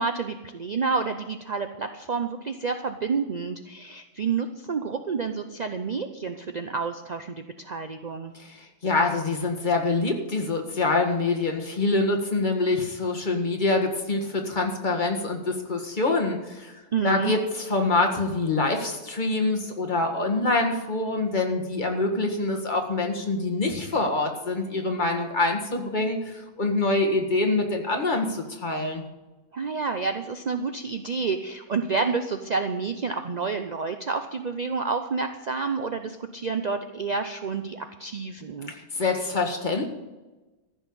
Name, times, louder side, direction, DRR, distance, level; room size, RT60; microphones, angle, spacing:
voice 1, 0.0-8.3 16.9-17.3 29.5-38.7, right 5 dB, 55° right, 7 dB, 0.4 m, -29 dB
voice 2, 8.3-16.7 17.0-29.0 38.7-39.9, left 3 dB, 30° left, 2 dB, 1.8 m, -25 dB
14.5 x 6.4 x 8.7 m, 1.1 s
omnidirectional pair, 1.6 m